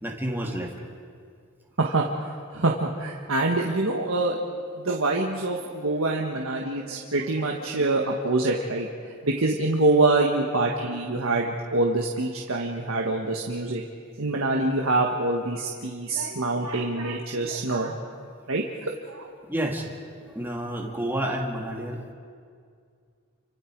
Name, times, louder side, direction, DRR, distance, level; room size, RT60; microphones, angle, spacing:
voice 1, 0.0-0.7 19.4-19.9 20.2-22.1, right 1 dB, 10° right, -1 dB, 2.3 m, -30 dB
voice 2, 1.8-8.9 9.2-13.8 14.2-17.9 18.5-19.3, right 2 dB, 85° right, 0 dB, 1.5 m, -25 dB
29.0 x 25.0 x 4.7 m, 2.2 s
head